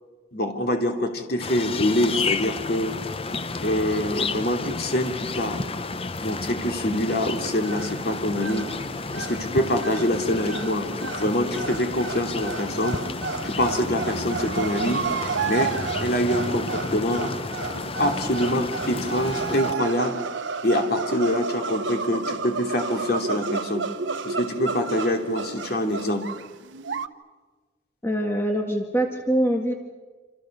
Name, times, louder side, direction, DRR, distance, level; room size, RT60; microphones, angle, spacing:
voice 1, 0.3-2.9 3.6-5.6 6.2-8.7 9.1-13.0 13.4-15.0 15.4-17.3 18.0-20.2 20.6-23.8 24.2-26.2, left 1 dB, 55° left, 3 dB, 2.9 m, -25 dB
sound 1, 1.4-19.7, left 3 dB, 30° left, 0.7 m, -32 dB
sound 2, 7.3-27.1, right 5 dB, 80° right, 1.1 m, -32 dB
voice 2, 28.0-29.7, right 1 dB, 15° left, 2 dB, 1.8 m, -24 dB
27.5 x 27.5 x 6.7 m, 1.4 s
head